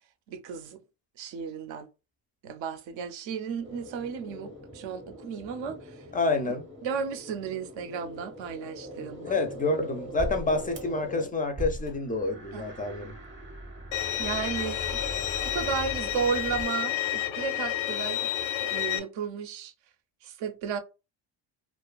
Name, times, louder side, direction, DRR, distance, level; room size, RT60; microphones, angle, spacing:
voice 1, 0.3-0.8 1.2-1.9 2.4-6.0 6.4-6.6 6.8-9.4 12.5-12.7 14.2-15.0 15.4-18.3 18.6-19.7 20.2-20.8, right 6 dB, 65° right, 0.6 m, -34 dB
sound 1, 3.6-11.3 11.6-16.7, equal, 25° right, 0.7 m, -41 dB
voice 2, 6.1-6.6 9.2-13.1, left 3 dB, 20° left, 0.4 m, -28 dB
Bowed string instrument, 13.9-19.0, left 11 dB, 90° left, 0.6 m, -30 dB
2.5 x 2.3 x 2.3 m
cardioid pair, 100°, 49 cm